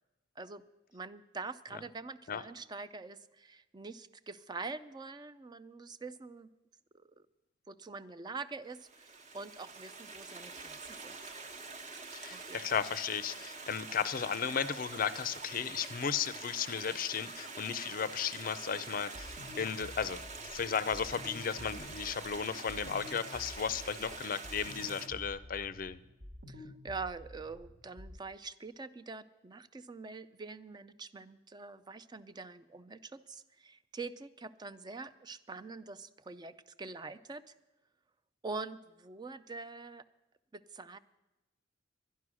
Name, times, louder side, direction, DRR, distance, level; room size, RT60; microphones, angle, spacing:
voice 1, 0.9-6.5 6.9-7.2 7.7-11.3 12.3-12.6 26.5-37.5 38.4-40.0 40.5-41.0, right 4 dB, 20° right, 13 dB, 0.4 m, -45 dB
Stream, 8.8-25.1, right 4 dB, 35° right, 1.1 m, -46 dB
voice 2, 12.1-20.2 20.5-26.0, left 7 dB, 45° left, 15 dB, 0.5 m, -35 dB
sound 1, 19.1-28.2, left 1 dB, 55° right, 1.4 m, -50 dB
11.5 x 11.0 x 6.2 m, 1.0 s
head